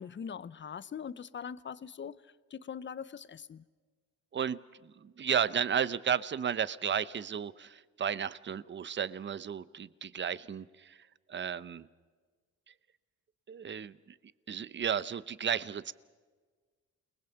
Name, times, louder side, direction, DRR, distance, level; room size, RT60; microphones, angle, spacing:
voice 1, 0.0-3.6, left 7 dB, 40° left, 0.9 m, -42 dB
voice 2, 4.3-11.9 13.5-14.2 14.5-15.9, right 8 dB, 40° right, 0.9 m, -33 dB
29.5 x 20.0 x 5.9 m
cardioid pair, 90°, 30 cm